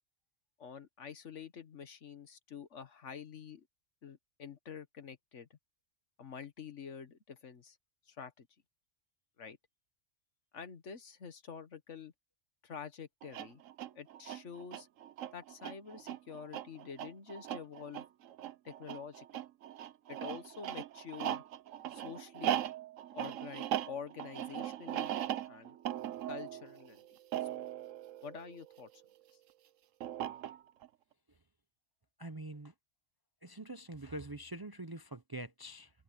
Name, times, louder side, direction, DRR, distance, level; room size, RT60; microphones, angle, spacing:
voice 1, 0.6-3.7 4.0-5.6 6.2-7.8 8.1-8.5 9.4-9.6 10.5-12.1 12.6-13.6 13.9-14.9 15.3-18.0 18.6-19.4 20.1-21.4 21.9-22.6 23.1-25.1 25.5-25.7 26.3-27.0 27.5-27.7 28.2-28.9, left 7 dB, 70° left, 1.6 m, -47 dB
sound 1, 13.2-29.0 30.0-30.9, right 11 dB, 85° right, 1.1 m, -39 dB
voice 2, 32.2-32.7 33.4-35.9, right 2 dB, 25° right, 0.5 m, -44 dB
omnidirectional pair, 1.3 m